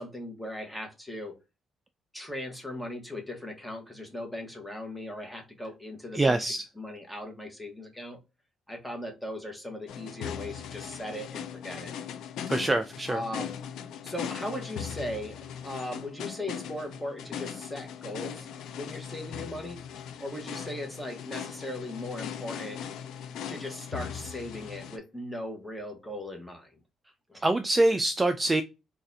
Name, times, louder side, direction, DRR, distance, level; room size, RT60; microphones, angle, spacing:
voice 1, 0.0-1.3 2.1-6.4 6.8-8.2 8.7-11.9 13.1-13.5 14.0-18.5 18.7-19.8 20.2-22.8 23.5-26.8 27.3-27.4, left 1 dB, 5° left, 2 dB, 1.2 m, -38 dB
voice 2, 6.1-6.6 12.5-13.2 27.4-28.6, right 2 dB, 20° right, 8 dB, 0.3 m, -24 dB
sound 1, 9.9-25.0, left 8 dB, 80° left, 0.4 m, -39 dB
3.9 x 2.4 x 2.7 m, 0.26 s
cardioid pair, 90°, 0 cm